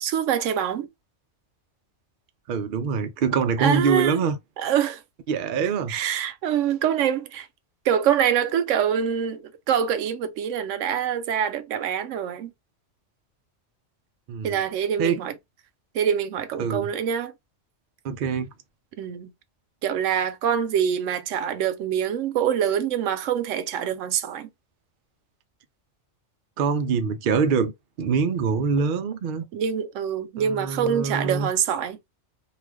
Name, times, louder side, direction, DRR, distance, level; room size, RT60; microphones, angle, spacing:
voice 1, 0.0-0.9 3.6-4.2 4.6-5.0 5.9-7.5 7.8-12.5 14.4-15.3 15.9-17.3 19.0-19.3 19.8-24.5 29.5-32.0, right 8 dB, 85° right, 0.9 m, -25 dB
voice 2, 2.5-4.4 5.3-6.0 14.3-14.6 15.0-15.2 16.6-16.9 18.0-18.5 26.6-29.4 30.4-31.5, right 5 dB, 60° right, 0.6 m, -24 dB
2.4 x 2.4 x 3.3 m
omnidirectional pair, 1.2 m